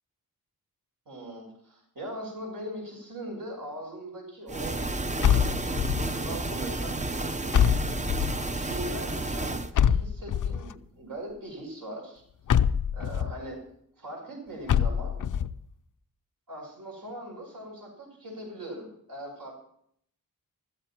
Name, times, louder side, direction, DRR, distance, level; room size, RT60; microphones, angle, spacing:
voice 1, 1.1-4.8 5.2-7.0 7.6-7.9 8.6-12.2 12.9-13.6 13.9-15.2 16.5-19.5, right 1 dB, 70° right, -1 dB, 6.2 m, -40 dB
sound 1, 4.5-9.7, right 2 dB, 20° right, 0.7 m, -31 dB
sound 2, 5.2-6.2 7.5-8.5 9.8-10.7 12.5-13.4 14.7-15.5, left 8 dB, 60° left, 0.5 m, -24 dB
15.5 x 13.5 x 4.5 m, 0.68 s
wide cardioid pair, 150°, 35 cm